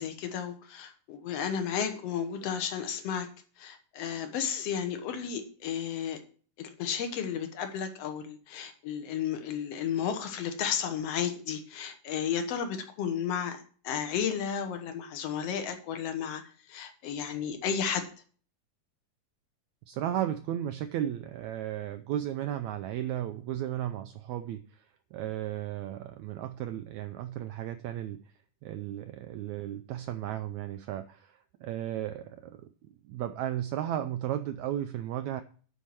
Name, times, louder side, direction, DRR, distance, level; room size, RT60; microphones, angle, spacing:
voice 1, 0.0-3.3 3.6-6.2 6.6-16.4 16.7-18.1, left 8 dB, 60° left, 7 dB, 1.8 m, -33 dB
voice 2, 19.9-28.3 28.6-35.4, right 11 dB, 85° right, 9 dB, 1.6 m, -35 dB
10.0 x 4.6 x 7.4 m, 0.43 s
omnidirectional pair, 3.9 m